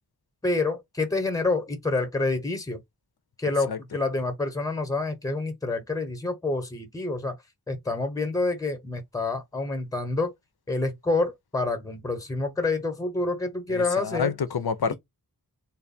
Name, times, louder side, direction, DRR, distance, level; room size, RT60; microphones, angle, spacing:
voice 1, 0.4-2.8 3.4-7.4 7.7-10.3 10.7-14.4 14.9-15.0, left 3 dB, 10° left, 0.9 m, -27 dB
voice 2, 13.7-14.9, left 6 dB, 70° left, 0.6 m, -28 dB
3.3 x 2.1 x 4.0 m
wide cardioid pair, 70°, 39 cm